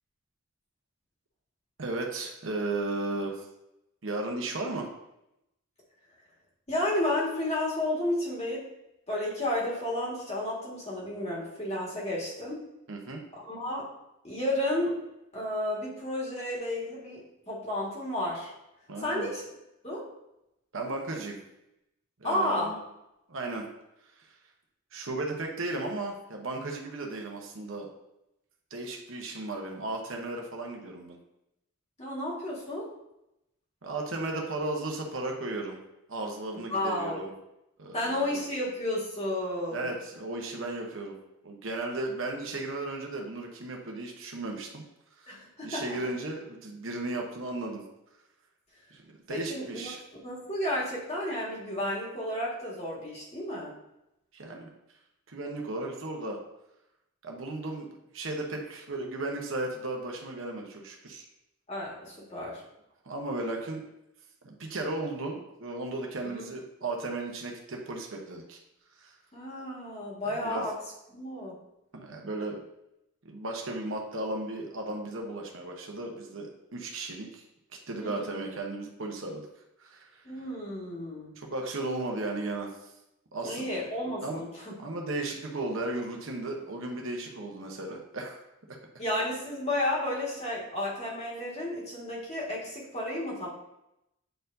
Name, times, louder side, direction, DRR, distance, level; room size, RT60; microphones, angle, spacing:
voice 1, 1.8-3.4 4.0-4.9 12.9-13.2 18.9-19.3 20.7-21.4 22.2-22.8 23.3-23.7 24.9-27.9 28.7-31.2 33.8-35.8 36.1-37.3 37.8-38.4 39.7-41.2 41.4-44.8 45.2-47.8 48.9-50.0 54.3-54.7 55.3-56.4 57.2-57.9 58.1-61.3 63.0-63.8 64.4-68.6 69.0-69.1 70.2-70.7 71.9-72.6 73.2-77.4 77.9-79.5 79.8-80.2 81.4-82.7 83.3-83.7 84.2-84.4 84.8-88.4, right 2 dB, 65° right, 1 dB, 1.0 m, -35 dB
voice 2, 6.7-8.6 9.1-12.6 13.3-13.9 14.2-14.9 15.3-18.5 19.0-19.4 19.8-20.0 22.2-22.7 32.0-32.9 36.5-37.2 37.9-39.9 45.3-46.1 49.3-50.0 50.2-53.7 61.7-62.6 66.2-66.5 69.3-70.7 71.1-71.5 78.0-78.3 80.2-81.4 83.4-84.7 89.0-93.5, left 1 dB, 30° left, -5 dB, 1.8 m, -32 dB
9.0 x 4.5 x 2.7 m, 0.87 s
head